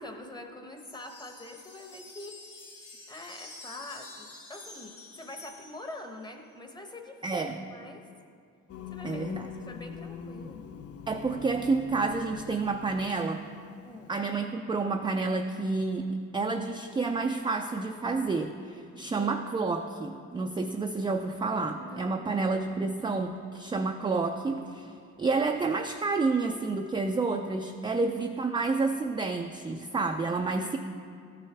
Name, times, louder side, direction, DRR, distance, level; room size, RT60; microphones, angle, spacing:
voice 1, 0.0-2.4 3.1-8.0 8.9-10.6 13.8-14.1 19.1-19.3 21.7-22.5 27.9-28.1, left 2 dB, 15° left, 4 dB, 0.9 m, -45 dB
sound 1, 0.8-6.2, left 2 dB, 75° left, 1.8 m, -49 dB
voice 2, 7.2-7.6 9.0-9.5 11.1-13.4 14.1-24.9 25.2-30.8, right 3 dB, 15° right, 4 dB, 0.3 m, -29 dB
Singing, 8.7-14.2, left 7 dB, 50° left, 0.5 m, -43 dB
13.0 x 5.5 x 3.4 m, 2.2 s
cardioid pair, 90°, 30 cm